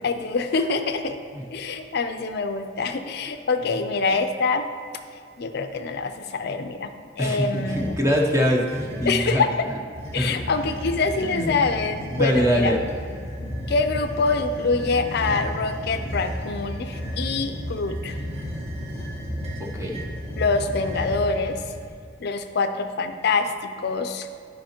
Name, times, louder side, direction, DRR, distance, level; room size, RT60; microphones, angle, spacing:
voice 1, 0.0-1.2 1.5-4.7 5.4-6.9 7.2-8.0 9.1-9.5 10.1-12.7 13.7-18.2 20.4-21.6 22.2-24.3, left 4 dB, 60° left, 8 dB, 0.5 m, -25 dB
voice 2, 7.2-9.4 10.1-10.4 11.2-11.5 12.1-12.8 19.7-20.0, equal, 15° right, 0 dB, 0.8 m, -23 dB
sound 1, 7.5-8.1 8.7-9.3 9.9-21.9, equal, 35° right, 1.4 m, -33 dB
10.5 x 5.1 x 2.9 m, 2.2 s
head